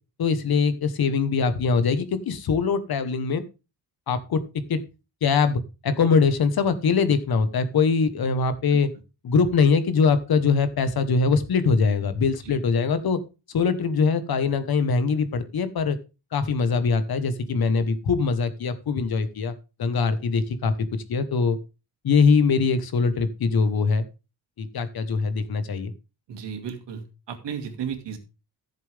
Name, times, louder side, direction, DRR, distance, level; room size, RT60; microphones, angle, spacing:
voice 1, 0.2-3.4 4.1-4.8 5.2-8.9 9.2-13.2 13.5-16.0 16.3-19.5 19.8-20.7 21.1-21.6 22.0-24.0 24.6-25.9, left 5 dB, 60° left, 11 dB, 1.4 m, -22 dB
voice 2, 26.3-28.2, right 7 dB, 90° right, 5 dB, 2.5 m, -34 dB
14.5 x 7.5 x 3.5 m, 0.30 s
wide cardioid pair, 150°, 41 cm